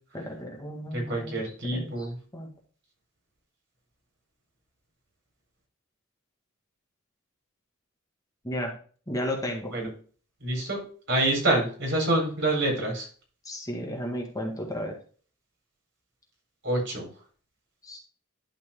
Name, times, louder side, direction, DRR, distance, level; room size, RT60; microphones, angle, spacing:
voice 1, 0.1-2.5 8.4-8.7 9.1-9.7 13.4-15.0 17.8-18.0, equal, 15° left, 0 dB, 1.7 m, -34 dB
voice 2, 0.9-2.2 9.7-9.9 10.4-10.8 11.1-13.1 16.6-17.1, right 1 dB, 60° right, 1 dB, 4.1 m, -26 dB
11.5 x 4.5 x 3.7 m, 0.41 s
head